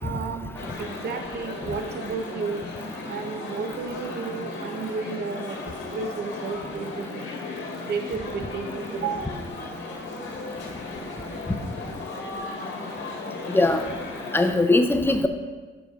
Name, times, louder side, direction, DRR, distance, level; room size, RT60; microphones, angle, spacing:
voice 1, 0.0-2.6 3.1-7.3 7.9-9.4, right 5 dB, 55° right, 6 dB, 0.8 m, -32 dB
sound 1, 0.5-14.5, left 3 dB, 70° left, 1.8 m, -36 dB
voice 2, 13.5-13.8 14.3-15.3, left 2 dB, 10° left, 6 dB, 0.6 m, -20 dB
7.2 x 4.9 x 4.5 m, 1.4 s
cardioid pair, 90°, 20 cm